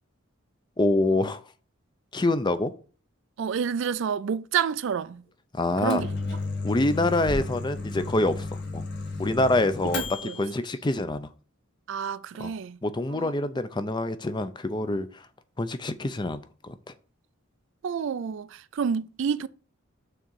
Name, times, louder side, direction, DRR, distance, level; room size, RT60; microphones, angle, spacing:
voice 1, 0.8-1.4 2.1-2.7 5.5-6.1 6.6-8.5 8.7-8.8 9.2-10.0 10.4-11.3 12.4-12.5 12.8-15.1 15.6-16.7, left 2 dB, 20° left, 0.5 m, -26 dB
voice 2, 3.4-5.2 5.8-6.1 9.9-10.4 11.9-12.8 13.1-13.3 17.8-19.5, right 7 dB, 60° right, 0.3 m, -29 dB
Microwave oven, 5.7-10.5, left 3 dB, 55° left, 1.5 m, -33 dB
6.5 x 3.8 x 6.2 m
head